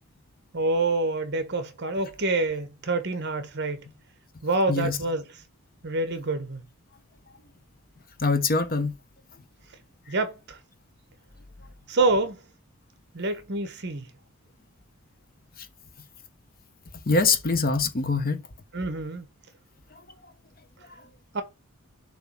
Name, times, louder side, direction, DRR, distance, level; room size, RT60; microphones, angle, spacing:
voice 1, 0.5-3.9 4.4-5.4 5.8-6.6 10.1-10.6 11.9-12.4 13.1-14.1 18.7-19.3 21.3-21.4, right 2 dB, 50° right, 1.2 m, -27 dB
voice 2, 8.2-8.9 17.1-18.4, left 3 dB, 40° left, 1.0 m, -23 dB
6.9 x 3.1 x 5.9 m
head